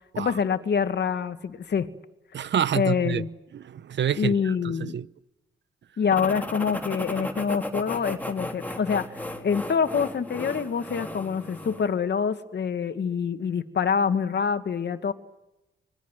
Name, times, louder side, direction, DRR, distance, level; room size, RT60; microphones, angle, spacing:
voice 1, 0.2-1.9 2.7-3.3 4.2-5.0 6.0-15.1, left 6 dB, 60° left, 2.1 m, -26 dB
voice 2, 2.3-3.2 3.5-5.1, right 9 dB, 65° right, 1.0 m, -28 dB
sound 1, 6.1-11.9, left 1 dB, 10° left, 3.4 m, -35 dB
26.0 x 21.0 x 9.2 m
cardioid pair, 75°, 20 cm